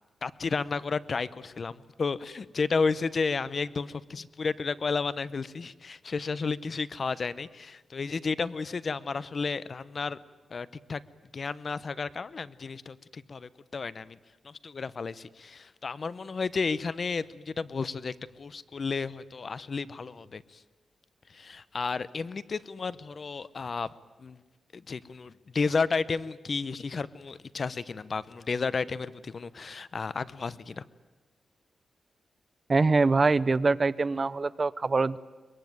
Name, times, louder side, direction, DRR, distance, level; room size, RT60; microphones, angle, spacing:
voice 1, 0.2-10.2 10.5-11.0 11.3-14.2 14.4-20.6 21.3-23.9 24.2-24.4 24.7-30.8, left 4 dB, 45° left, 17 dB, 0.8 m, -32 dB
voice 2, 32.7-35.2, right 3 dB, 35° right, 17 dB, 0.7 m, -24 dB
23.0 x 22.0 x 9.5 m, 1.2 s
wide cardioid pair, 115°, 0 cm